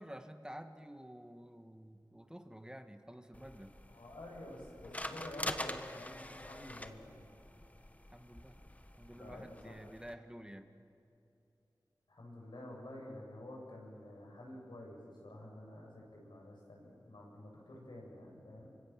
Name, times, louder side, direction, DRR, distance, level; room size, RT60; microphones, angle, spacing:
voice 1, 0.0-3.7 8.1-8.6 9.0-10.7 15.4-15.5 18.6-18.8, equal, 10° right, 7 dB, 1.4 m, -51 dB
sound 1, 3.3-10.1, left 1 dB, 20° left, 1.3 m, -45 dB
voice 2, 3.9-7.2 9.2-9.9 12.1-18.7, left 1 dB, 90° left, -2 dB, 7.4 m, -50 dB
27.0 x 25.0 x 7.5 m, 2.7 s
wide cardioid pair, 55°, 8 cm